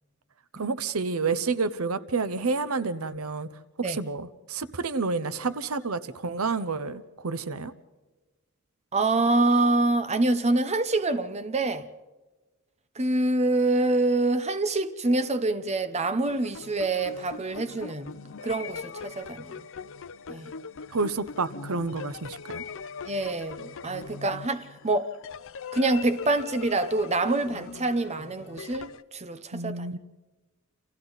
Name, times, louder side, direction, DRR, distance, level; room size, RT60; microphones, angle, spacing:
voice 1, 0.5-3.5 3.8-7.7 20.9-22.6 29.5-30.0, right 4 dB, 80° right, 0.9 m, -29 dB
voice 2, 8.9-11.9 13.0-18.1 18.4-19.5 20.3-20.5 23.1-25.2 25.7-29.9, right 2 dB, 30° right, 0.9 m, -26 dB
sound 1, 16.2-29.0, left 5 dB, 65° left, 0.6 m, -41 dB
29.0 x 27.5 x 4.1 m
head